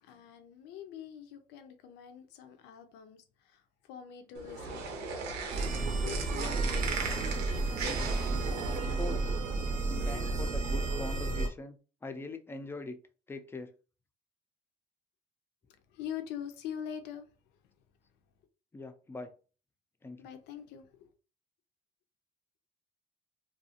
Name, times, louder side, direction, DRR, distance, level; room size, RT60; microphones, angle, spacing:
voice 1, 0.0-5.2 6.0-7.3 15.7-17.3 20.2-21.1, left 9 dB, 85° left, 0.5 m, -44 dB
sound 1, 4.3-9.4, right 4 dB, 85° right, 0.7 m, -38 dB
sound 2, 5.5-11.5, right 3 dB, 50° right, 0.6 m, -32 dB
voice 2, 8.7-9.4 10.0-11.8 12.0-13.0 13.3-13.7 18.7-19.3 20.0-20.3, left 3 dB, 15° left, 0.4 m, -42 dB
2.5 x 2.3 x 2.7 m
cardioid pair, 110°, 17 cm